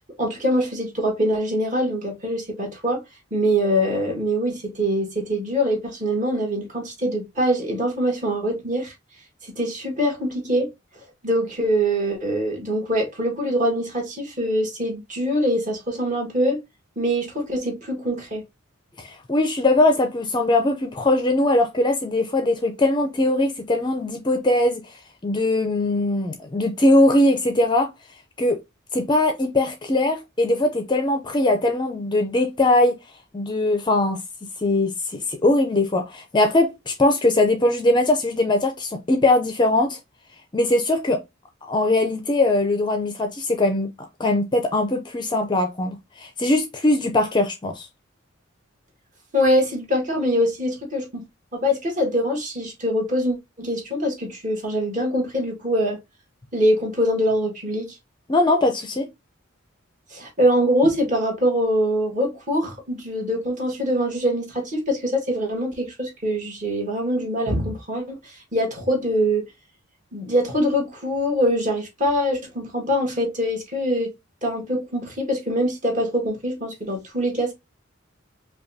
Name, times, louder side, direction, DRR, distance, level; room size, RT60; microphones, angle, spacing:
voice 1, 0.2-3.0 3.3-8.9 9.4-10.7 11.2-16.6 17.0-18.4 49.3-51.2 51.5-56.0 56.5-57.9 60.1-69.4 70.1-74.1 74.4-77.5, equal, 40° right, 1.5 m, -23 dB
voice 2, 19.0-24.8 25.2-27.9 28.4-28.6 28.9-33.0 33.3-34.2 34.6-40.0 40.5-41.2 41.7-43.9 44.2-47.9 58.3-59.1, left 2 dB, 20° left, 0.5 m, -21 dB
5.1 x 2.3 x 2.6 m
head